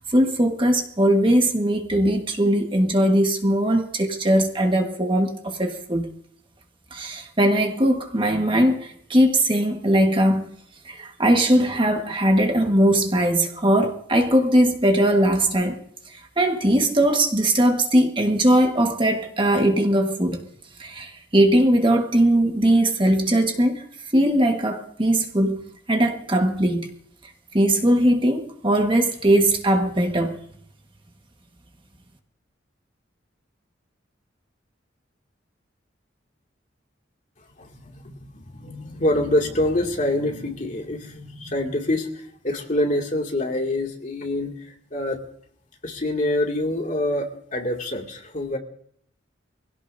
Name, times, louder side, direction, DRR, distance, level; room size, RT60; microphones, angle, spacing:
voice 1, 0.0-6.1 6.9-10.5 10.8-15.8 16.1-20.4 20.8-23.8 24.1-25.6 25.9-26.9 27.5-30.4, right 1 dB, 25° right, 1.6 m, -20 dB
voice 2, 37.6-42.1 42.4-44.5 44.9-45.2 45.8-48.6, left 1 dB, 40° left, 2.4 m, -25 dB
24.0 x 17.0 x 2.7 m
head